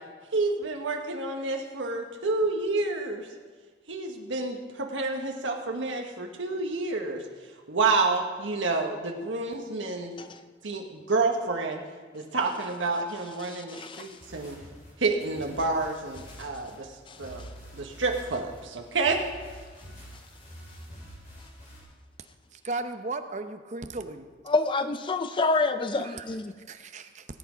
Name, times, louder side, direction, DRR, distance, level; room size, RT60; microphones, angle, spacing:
voice 1, 0.3-3.3 3.9-7.2 7.7-10.1 10.6-11.8 12.1-14.6 15.0-17.4 17.7-19.2, right 3 dB, 75° right, 2 dB, 1.2 m, -29 dB
voice 2, 13.5-14.1 17.1-17.5 24.5-26.5, left 3 dB, 25° left, 10 dB, 0.4 m, -28 dB
sound 1, 14.0-21.8, equal, 40° left, 4.8 m, -47 dB
voice 3, 22.5-24.3 26.0-26.3 26.7-27.3, right 3 dB, 40° right, 8 dB, 0.7 m, -35 dB
17.5 x 8.4 x 5.0 m, 1.5 s
head